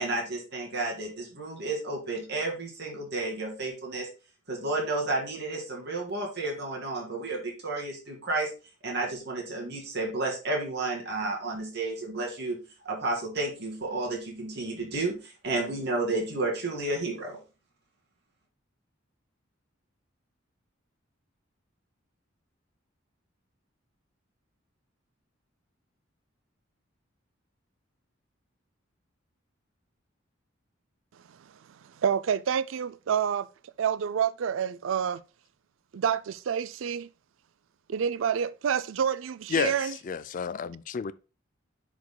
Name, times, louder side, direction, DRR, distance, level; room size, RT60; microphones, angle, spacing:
voice 1, 0.0-4.1 4.5-8.5 8.8-12.6 12.8-17.4, right 2 dB, 55° right, 2.5 m, -31 dB
voice 2, 32.0-33.5 33.8-35.2 35.9-37.1 37.9-40.0, right 8 dB, 70° right, 0.4 m, -28 dB
voice 3, 39.5-41.1, left 6 dB, 40° left, 0.3 m, -31 dB
10.5 x 4.9 x 2.3 m
head